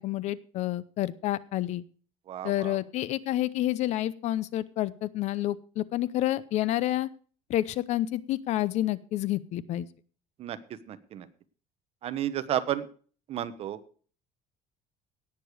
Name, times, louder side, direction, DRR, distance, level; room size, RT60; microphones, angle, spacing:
voice 1, 0.0-1.8 2.4-7.1 7.5-9.9, left 14 dB, 50° left, 18 dB, 0.7 m, -29 dB
voice 2, 2.3-2.8 10.4-10.6 10.9-11.3 12.0-12.9 13.3-14.0, right 11 dB, 45° right, 12 dB, 1.1 m, -32 dB
18.0 x 6.8 x 4.9 m, 0.42 s
cardioid pair, 165°, 14 cm